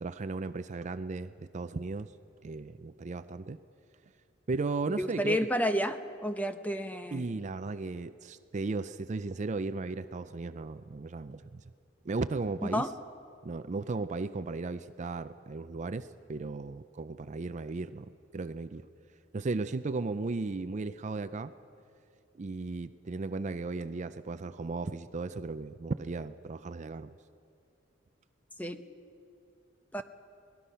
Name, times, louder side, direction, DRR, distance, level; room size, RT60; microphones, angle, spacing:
voice 1, 0.0-2.1 2.4-3.6 4.5-5.4 7.1-11.6 12.0-12.9 13.4-18.8 19.3-21.5 22.4-27.1, right 3 dB, 40° right, 12 dB, 0.4 m, -36 dB
voice 2, 5.0-7.4 12.7-12.9 28.6-28.8 29.9-30.0, equal, 10° left, 8 dB, 0.8 m, -31 dB
24.5 x 19.0 x 5.6 m, 2.4 s
head